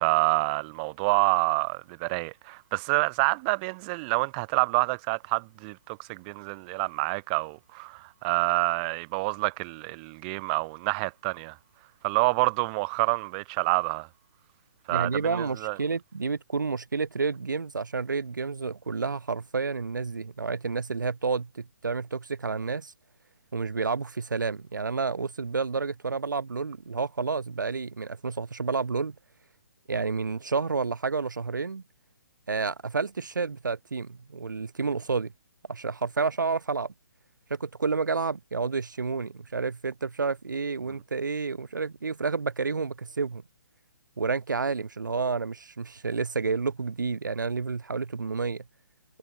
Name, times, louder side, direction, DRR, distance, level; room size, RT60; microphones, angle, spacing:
voice 1, 0.0-11.6 12.0-14.1 14.9-15.8, right 29 dB, 30° right, 2.0 m, -27 dB
voice 2, 14.9-22.9 23.5-29.1 29.9-31.8 32.5-35.3 35.7-36.9 37.5-43.4 44.2-48.6, right 4 dB, 75° right, 4.9 m, -30 dB
figure-of-eight pair, 135°, 10 cm